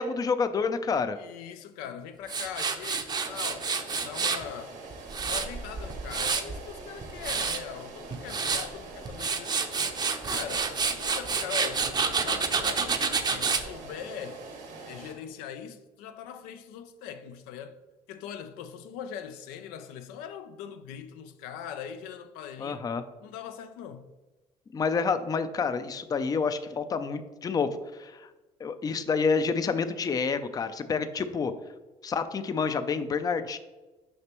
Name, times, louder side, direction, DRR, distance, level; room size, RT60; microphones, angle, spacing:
voice 1, 0.0-1.2 22.6-23.0 24.7-27.7 28.0-28.3 28.6-31.5 32.0-33.6, left 5 dB, 25° left, 0.4 m, -28 dB
voice 2, 1.1-3.7 4.0-4.8 5.2-9.6 10.0-14.4 14.8-17.8 18.1-22.8 23.2-24.1, left 8 dB, 85° left, 0.5 m, -41 dB
Tools, 2.3-4.4 4.9-6.6 7.0-7.6 8.1-8.7 9.1-13.6, right 5 dB, 30° right, 0.6 m, -28 dB
sound 1, 3.2-15.1, right 2 dB, 80° right, 1.4 m, -44 dB
6.4 x 5.0 x 3.0 m
supercardioid pair, 90°, 14 cm